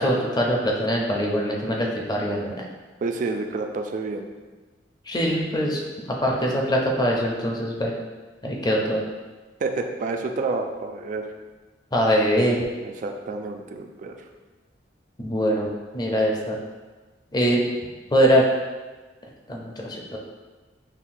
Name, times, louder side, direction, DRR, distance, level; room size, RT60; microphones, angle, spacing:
voice 1, 0.0-2.5 5.1-5.8 6.1-7.9 8.4-9.0 11.9-12.6 15.2-15.7 15.9-16.6 17.3-17.6 18.1-18.4 19.5-20.2, equal, 25° left, -1 dB, 0.5 m, -22 dB
voice 2, 3.0-4.3 9.6-11.3 12.8-14.1, right 3 dB, 45° right, 4 dB, 0.3 m, -29 dB
5.6 x 2.1 x 2.5 m, 1.3 s
head